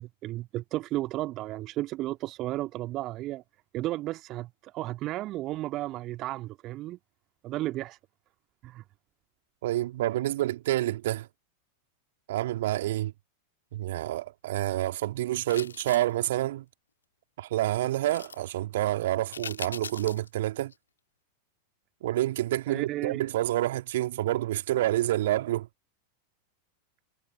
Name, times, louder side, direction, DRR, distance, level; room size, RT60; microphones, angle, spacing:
voice 1, 0.0-3.4 3.7-7.0 7.4-8.0 8.6-8.8 22.7-23.2, right 16 dB, 35° right, 1.9 m, -33 dB
voice 2, 9.6-11.3 12.3-13.1 13.7-16.6 17.4-20.7 22.0-25.7, right 14 dB, 55° right, 2.4 m, -28 dB
sound 1, 15.5-16.2 18.1-18.4 19.3-20.3 20.7-20.8, left 6 dB, 70° left, 2.5 m, -40 dB
figure-of-eight pair, 90°, 0 cm